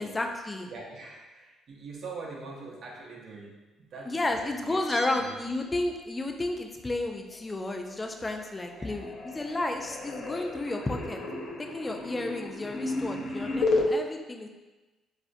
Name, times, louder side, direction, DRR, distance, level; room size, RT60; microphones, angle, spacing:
voice 1, 0.0-0.7 4.1-11.2 11.6-14.5, left 2 dB, 20° left, 4 dB, 0.3 m, -32 dB
voice 2, 0.7-4.8 5.1-5.4 8.8-9.1 11.9-12.0, right 3 dB, 55° right, -2 dB, 0.6 m, -44 dB
Bell, 4.9-6.3 6.6-6.7, right 1 dB, 30° right, 0.9 m, -43 dB
sound 1, 7.9-8.5 8.7-13.9, left 3 dB, 65° left, 0.5 m, -33 dB
4.0 x 2.4 x 2.5 m, 1.1 s
cardioid pair, 120°, 0 cm